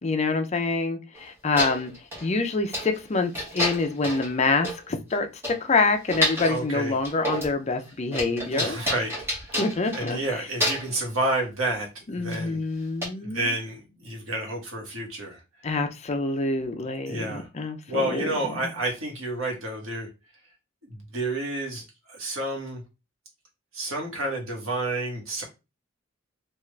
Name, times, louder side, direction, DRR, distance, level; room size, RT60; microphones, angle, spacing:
voice 1, 0.0-1.9 2.2-8.8 9.6-10.2 12.1-13.6 15.6-18.3, left 3 dB, 35° left, 0.5 m, -26 dB
sound 1, 1.2-1.3 1.6-2.3 2.7-3.0 3.3-4.3 4.6-4.8 5.1-5.2 5.4-6.6 7.0-7.6 7.8-10.3 10.6-11.0 12.3-12.4 13.0-13.1, equal, 10° right, 1.1 m, -29 dB
voice 2, 6.5-6.9 8.5-9.1 9.4-9.6 9.9-12.6 13.2-15.4 17.1-20.1 20.9-22.8 23.7-25.4, right 2 dB, 85° right, 1.3 m, -30 dB
3.4 x 2.4 x 3.1 m
head